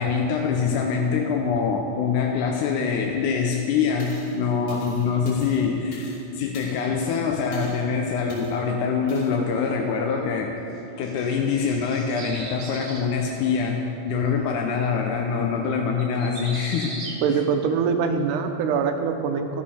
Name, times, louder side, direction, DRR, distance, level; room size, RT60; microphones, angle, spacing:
voice 1, 0.0-10.6 11.0-17.0, left 5 dB, 90° left, 1 dB, 2.2 m, -24 dB
sound 1, 4.0-4.3 4.7-6.2 6.5-7.0 7.5-7.8 8.3-8.5 9.1-9.3, left 2 dB, 65° left, 3.6 m, -46 dB
Early Morning Bird, 8.8-9.1 10.9-13.1 16.0-17.2, right 2 dB, 55° right, 1.2 m, -38 dB
voice 2, 17.2-19.6, right 6 dB, 85° right, 6 dB, 2.2 m, -23 dB
13.0 x 6.7 x 5.5 m, 2.9 s
omnidirectional pair, 3.5 m